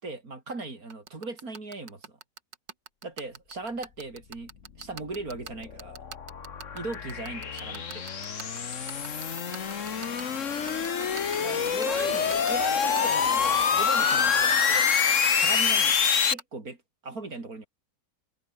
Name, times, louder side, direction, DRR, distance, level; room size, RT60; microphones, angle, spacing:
voice 1, 0.0-2.2 3.0-4.5 4.8-6.0 6.7-8.0 10.0-10.1 10.7-10.8 11.4-14.9 15.3-16.0 16.3-16.8 17.0-17.7, right 3 dB, 55° right, 4.1 m, -38 dB
sound 1, 0.9-16.4, right 6 dB, 90° right, 2.6 m, -41 dB
sound 2, 5.0-16.3, left 6 dB, 45° left, 1.6 m, -26 dB
omnidirectional pair, 1.9 m